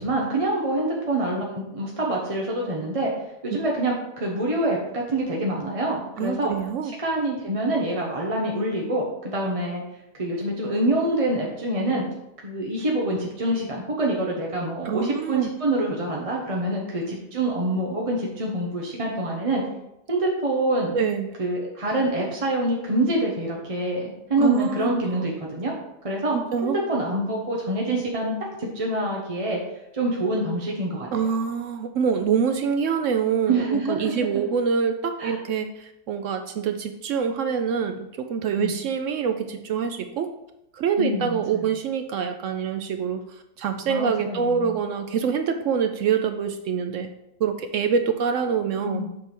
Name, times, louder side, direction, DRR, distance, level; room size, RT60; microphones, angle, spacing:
voice 1, 0.0-3.1 3.4-6.5 7.0-9.8 10.1-12.0 12.4-19.6 20.1-21.0 21.4-25.7 26.0-26.4 26.6-29.6 29.9-31.1 33.5-34.1 35.2-35.4 38.6-38.7 41.0-41.6 43.9-44.8 48.8-49.1, right 1 dB, 25° right, -2 dB, 0.8 m, -26 dB
voice 2, 6.2-6.9 14.8-15.5 20.9-21.4 24.4-25.0 26.3-26.8 31.1-40.3 40.7-43.2 43.6-47.1 47.4-49.0, right 6 dB, 70° right, 7 dB, 0.7 m, -25 dB
7.4 x 3.4 x 5.9 m, 0.88 s
omnidirectional pair, 1.8 m